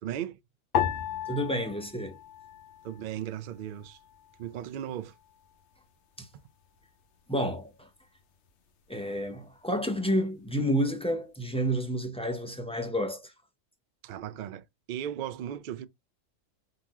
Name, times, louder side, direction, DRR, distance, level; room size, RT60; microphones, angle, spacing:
voice 1, 0.0-0.4 2.8-4.0 4.4-5.1 14.0-15.9, right 10 dB, 65° right, 0.4 m, -36 dB
sound 1, 0.7-3.3 3.5-4.4 5.1-5.5, left 9 dB, 65° left, 1.0 m, -34 dB
voice 2, 1.3-2.2 6.2-6.3 7.3-7.9 8.9-13.3, equal, 10° left, 0.4 m, -30 dB
3.9 x 2.8 x 4.6 m
omnidirectional pair, 1.3 m